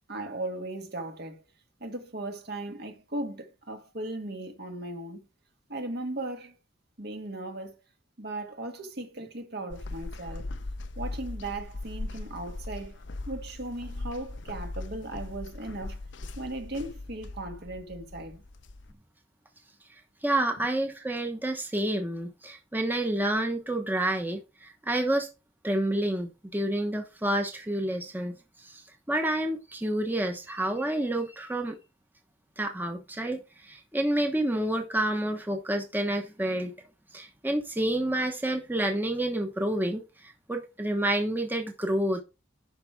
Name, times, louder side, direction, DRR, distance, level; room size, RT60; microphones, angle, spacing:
voice 1, 0.1-1.4 1.8-5.3 5.7-6.5 7.0-7.8 8.2-10.4 11.0-13.0 13.3-16.0 16.4-18.4, right 2 dB, 55° right, 1.9 m, -37 dB
sound 1, 9.7-18.9, left 2 dB, 70° left, 0.8 m, -39 dB
voice 2, 20.2-25.3 25.6-31.8 32.6-36.7 37.1-42.2, right 1 dB, 10° right, 1.1 m, -29 dB
11.5 x 5.0 x 4.6 m
head